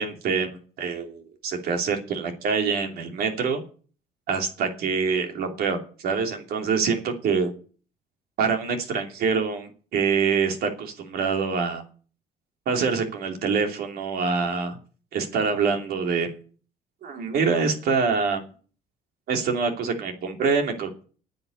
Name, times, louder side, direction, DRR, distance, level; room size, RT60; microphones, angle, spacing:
voice 1, 0.0-3.6 4.3-7.5 8.4-11.8 12.7-14.8 15.1-16.3 17.0-18.4 19.3-21.0, right 5 dB, 65° right, 4 dB, 3.0 m, -25 dB
9.6 x 8.1 x 9.6 m, 0.41 s
cardioid pair, 110°, 17 cm